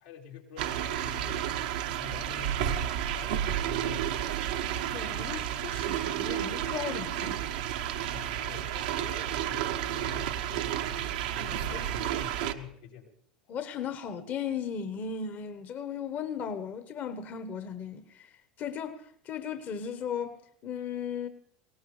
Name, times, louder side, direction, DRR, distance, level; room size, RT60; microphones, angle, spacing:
voice 1, 0.0-1.5 1.9-4.3 5.2-5.3 8.1-11.0 11.6-13.1, left 8 dB, 85° left, 3.7 m, -47 dB
sound 1, 0.6-12.5, right 10 dB, 75° right, 0.9 m, -31 dB
voice 2, 4.9-7.4 11.4-11.8 13.5-18.3 18.6-20.4 20.6-21.3, left 7 dB, 45° left, 1.2 m, -36 dB
20.5 x 18.0 x 3.3 m
hypercardioid pair, 90°, 4 cm